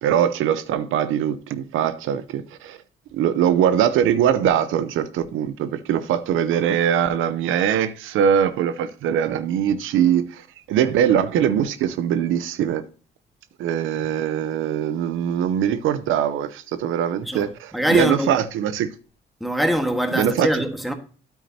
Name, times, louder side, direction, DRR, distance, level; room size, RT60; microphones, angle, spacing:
voice 1, 0.0-2.8 3.1-12.9 13.6-18.9 20.1-20.6, right 9 dB, 85° right, 0.7 m, -22 dB
voice 2, 17.7-18.3 19.4-20.9, equal, ahead, 1.5 m, -22 dB
9.4 x 8.5 x 2.8 m
cardioid pair, 90°, 20 cm